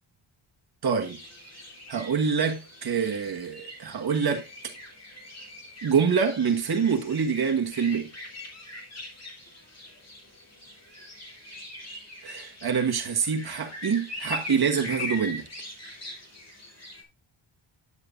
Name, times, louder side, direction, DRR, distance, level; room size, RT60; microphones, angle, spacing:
voice 1, 0.8-1.2 1.9-4.4 5.8-8.1 12.2-15.5, right 6 dB, 50° right, 1.5 m, -26 dB
sound 1, 1.0-17.0, left 2 dB, 30° left, 2.9 m, -41 dB
9.7 x 9.1 x 2.5 m
wide cardioid pair, 165°, 50 cm